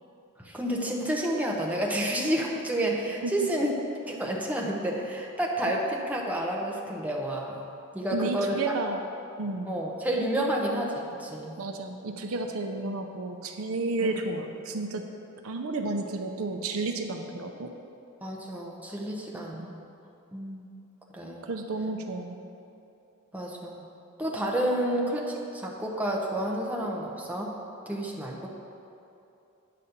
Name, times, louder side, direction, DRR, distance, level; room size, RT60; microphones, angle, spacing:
voice 1, 0.4-3.7 4.1-7.6 7.9-8.6 9.6-11.6 14.0-14.2 18.2-19.8 20.3-20.7 21.1-21.5 23.3-23.8 24.2-27.5 27.9-28.5, right 1 dB, 5° right, -2 dB, 0.9 m, -30 dB
voice 2, 8.1-9.0 9.4-9.7 11.6-15.1 15.4-17.7 19.5-19.7 21.4-22.4, right 3 dB, 70° right, 5 dB, 0.6 m, -32 dB
9.4 x 4.2 x 6.6 m, 2.7 s
head